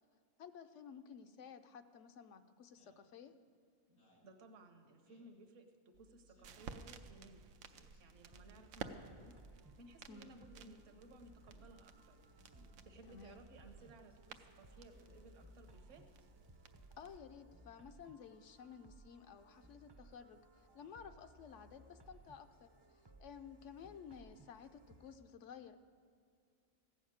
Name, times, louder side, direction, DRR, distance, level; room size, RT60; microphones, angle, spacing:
voice 1, 0.4-3.3 10.1-10.3 13.1-13.4 17.0-22.7 23.2-25.8, left 7 dB, 70° left, 9 dB, 0.9 m, -54 dB
Speech synthesizer, 2.7-3.0 3.9-4.3 5.1-5.4 6.2-6.7 7.6-8.0 8.9-9.2 10.2-10.5 11.4-11.7 12.5-12.8 13.7-14.0 14.8-15.2, left 1 dB, 90° left, 3.5 m, -69 dB
voice 2, 4.2-9.4 9.8-12.6 12.9-16.1, right 2 dB, 65° right, 5 dB, 1.3 m, -60 dB
sound 1, 5.9-17.2, right 6 dB, 85° right, 1.1 m, -55 dB
sound 2, 8.3-25.2, right 2 dB, 30° right, 0.4 m, -63 dB
15.0 x 6.4 x 8.8 m, 2.1 s
omnidirectional pair, 1.4 m